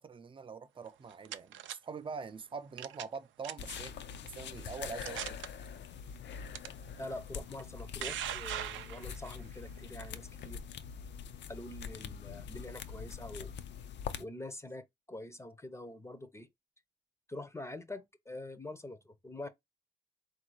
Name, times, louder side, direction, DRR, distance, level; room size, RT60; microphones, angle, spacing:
voice 1, 0.0-3.9 4.2-5.4, right 5 dB, 25° right, 0.5 m, -44 dB
sound 1, 0.9-1.8 2.8-3.2 3.4-3.8 4.4-4.5 5.0-5.5 6.5-6.7 7.6-9.4, right 11 dB, 75° right, 0.5 m, -40 dB
sound 2, 3.6-14.2, left 7 dB, 65° left, 0.6 m, -44 dB
voice 2, 7.0-10.6 11.5-13.5 14.2-16.5 17.3-19.5, left 1 dB, 15° left, 0.6 m, -45 dB
3.7 x 2.6 x 4.7 m
cardioid pair, 90°, 20 cm